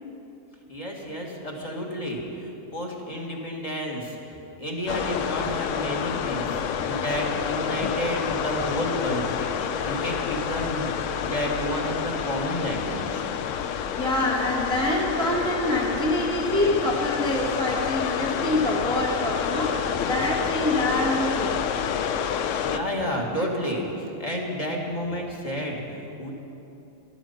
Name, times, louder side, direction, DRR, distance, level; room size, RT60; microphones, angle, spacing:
voice 1, 0.7-10.9 11.2-13.2 22.6-26.3, equal, 30° left, -2 dB, 1.7 m, -31 dB
sound 1, 4.9-22.8, left 8 dB, 85° left, 1.0 m, -28 dB
voice 2, 14.0-21.6, left 1 dB, 5° left, -2 dB, 1.0 m, -26 dB
13.0 x 12.0 x 5.6 m, 2.8 s
omnidirectional pair, 1.3 m